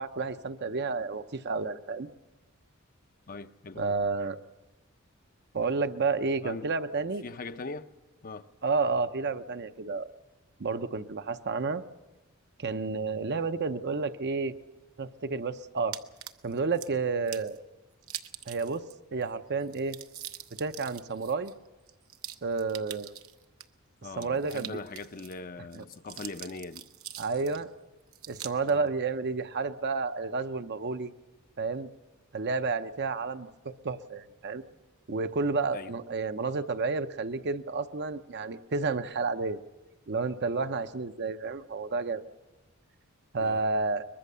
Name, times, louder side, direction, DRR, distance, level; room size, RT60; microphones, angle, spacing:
voice 1, 0.0-2.1 3.8-4.4 5.5-7.2 8.6-10.1 10.6-11.8 12.6-14.5 15.0-16.0 16.4-17.6 18.5-18.8 19.1-20.0 20.6-21.5 22.4-23.1 24.2-24.8 25.7-25.8 27.2-27.7 28.3-31.1 31.6-31.9 32.3-34.6 35.1-39.6 40.1-42.2 43.3-44.1, right 4 dB, 50° right, 0.7 m, -30 dB
voice 2, 3.3-4.0 6.4-6.7 7.2-7.9 8.2-8.5 24.0-26.9 28.7-28.9 35.7-35.9 43.4-43.6, left 3 dB, 40° left, 0.7 m, -41 dB
sound 1, 15.9-16.9 17.3-17.6 18.0-18.9 19.2-19.3 19.6-23.6 24.1-25.4 25.7-27.6 28.1-28.7, right 11 dB, 75° right, 0.9 m, -43 dB
23.0 x 21.0 x 6.8 m
head